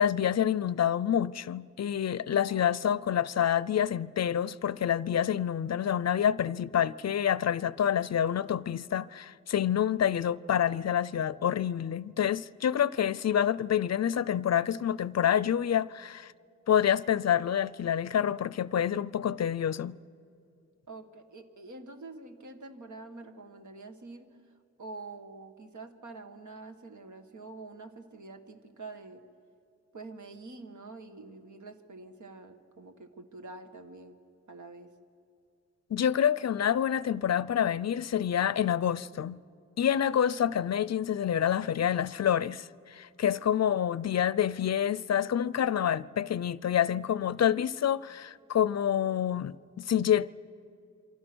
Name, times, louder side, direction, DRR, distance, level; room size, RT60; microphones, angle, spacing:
voice 1, 0.0-16.3 16.7-20.0 35.9-39.4 39.8-50.3, left 9 dB, 60° left, 0.5 m, -27 dB
voice 2, 20.9-24.3 24.8-29.2 29.9-34.2 34.5-34.9 43.3-43.4, right 3 dB, 75° right, 1.8 m, -46 dB
27.5 x 24.0 x 6.2 m
wide cardioid pair, 120°, 30 cm